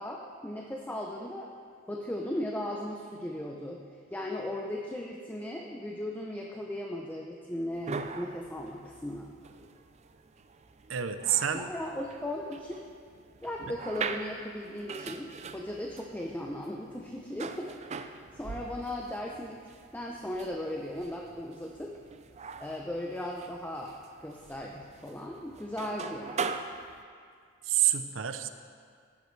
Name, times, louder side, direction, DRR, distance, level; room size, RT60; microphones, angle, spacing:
voice 1, 0.0-1.5 1.9-3.8 4.1-9.3 11.5-12.8 13.4-18.0 18.3-19.6 19.9-21.9 22.6-23.9 24.2-26.6, left 1 dB, 10° left, -1 dB, 0.7 m, -37 dB
sound 1, 7.7-27.0, right 5 dB, 35° right, 0.5 m, -42 dB
voice 2, 10.9-11.7 27.6-28.5, right 10 dB, 80° right, 9 dB, 0.7 m, -28 dB
14.5 x 11.0 x 3.3 m, 2.2 s
head